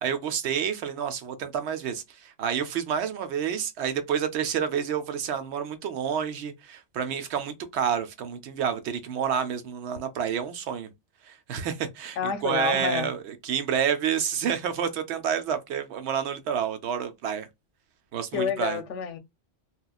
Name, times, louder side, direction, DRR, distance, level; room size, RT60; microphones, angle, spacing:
voice 1, 0.0-10.9 11.3-17.5 18.1-18.8, right 8 dB, 70° right, 0.8 m, -29 dB
voice 2, 12.2-13.1 18.3-19.2, left 6 dB, 85° left, 0.9 m, -28 dB
2.9 x 2.3 x 2.2 m
omnidirectional pair, 1.2 m